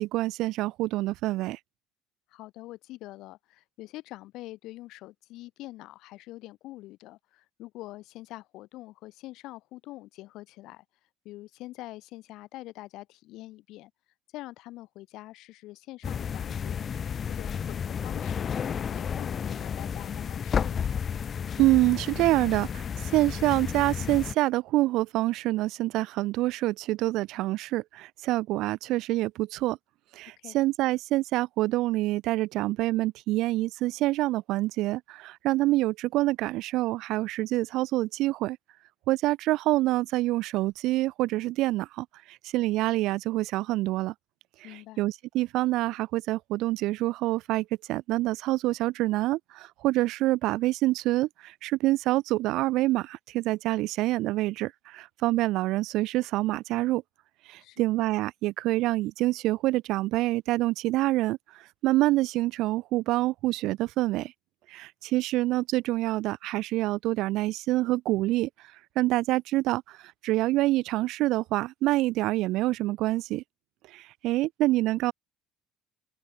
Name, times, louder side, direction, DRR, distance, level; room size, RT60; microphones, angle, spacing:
voice 1, 0.0-1.6 21.6-29.8 30.1-38.6 39.1-44.1 45.0-57.0 57.5-64.3 64.7-68.5 68.9-73.4 73.9-75.1, right 17 dB, 65° right, 0.9 m, -26 dB
voice 2, 2.3-10.8 11.2-13.9 14.3-16.9 17.2-21.1 30.4-30.6 44.6-45.0 57.6-57.8, left 17 dB, 65° left, 7.7 m, -45 dB
sound 1, 16.0-24.3, left 7 dB, 35° left, 1.0 m, -32 dB
open air
cardioid pair, 120°, 0 cm